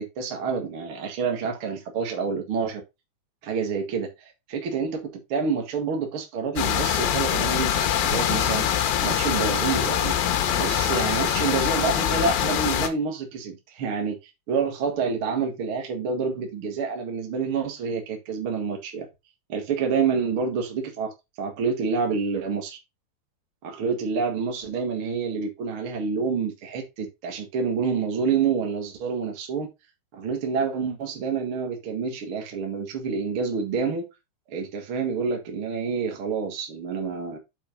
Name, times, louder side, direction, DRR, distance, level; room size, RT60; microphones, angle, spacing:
voice 1, 0.0-2.8 3.4-4.1 4.5-5.0 5.3-8.7 9.0-10.1 10.6-14.2 14.5-19.1 19.5-21.1 21.4-22.8 23.6-29.7 30.1-34.1 34.5-37.4, right 5 dB, 55° right, 2 dB, 1.4 m, -28 dB
sound 1, 6.6-12.9, left 10 dB, 70° left, 3.1 m, -24 dB
7.3 x 4.7 x 5.3 m, 0.23 s
omnidirectional pair, 5.2 m